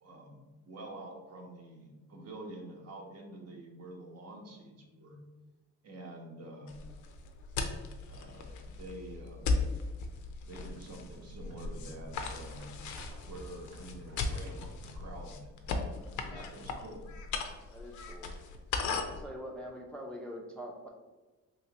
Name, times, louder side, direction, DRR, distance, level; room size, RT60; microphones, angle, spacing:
voice 1, 0.0-5.2 5.8-6.8 8.1-9.4 10.5-12.7 13.2-15.5 16.1-17.1, right 1 dB, 55° right, 1 dB, 0.8 m, -47 dB
sound 1, 6.7-19.3, left 4 dB, 75° left, 0.5 m, -37 dB
sound 2, 10.8-15.2 15.6-15.7, right 2 dB, 90° right, 0.8 m, -55 dB
voice 2, 17.7-18.4 19.0-20.9, equal, 5° left, 0 dB, 0.4 m, -44 dB
3.0 x 3.0 x 2.8 m, 1.2 s
cardioid pair, 90°, 30 cm